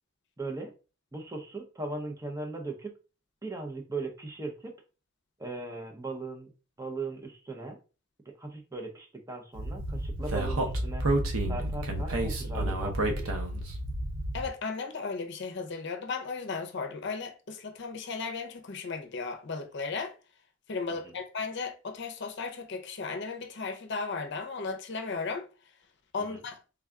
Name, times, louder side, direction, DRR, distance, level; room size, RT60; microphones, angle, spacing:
voice 1, 0.4-0.7 1.1-2.9 3.4-4.7 5.4-6.5 6.8-7.8 8.4-11.1 11.5-13.3 20.9-21.1 26.3-26.4, right 3 dB, 15° right, 0.5 m, -38 dB
Speech, 9.6-14.5, right 1 dB, 90° right, 0.7 m, -30 dB
voice 2, 14.3-20.1 20.7-25.5 26.1-26.6, left 4 dB, 55° left, 0.6 m, -35 dB
3.5 x 2.3 x 3.5 m
head